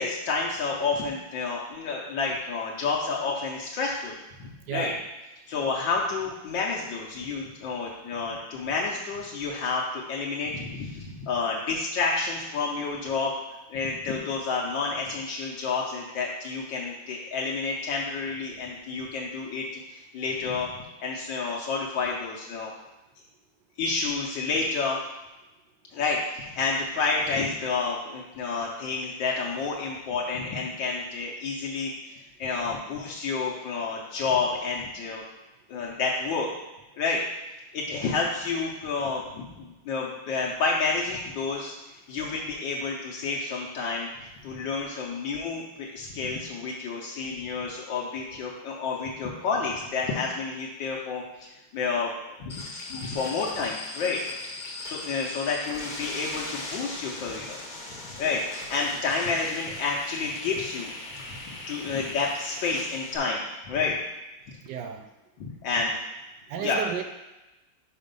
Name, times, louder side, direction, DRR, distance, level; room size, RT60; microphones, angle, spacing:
voice 1, 0.0-4.9 5.5-13.3 13.7-20.7 21.0-22.7 23.8-25.0 25.9-31.9 32.4-35.2 35.7-36.5 37.0-37.2 37.7-41.7 42.1-54.2 54.8-57.6 58.2-60.9 61.3-64.0 65.4-66.0 66.6-66.8, left 4 dB, 80° left, -3 dB, 1.5 m, -30 dB
voice 2, 4.7-5.0 37.9-38.1 64.6-65.1 66.5-67.0, right 8 dB, 75° right, 7 dB, 1.2 m, -33 dB
sound 1, 52.5-63.2, left 2 dB, 35° left, 0.8 m, -39 dB
5.2 x 4.9 x 5.2 m, 1.0 s
omnidirectional pair, 2.0 m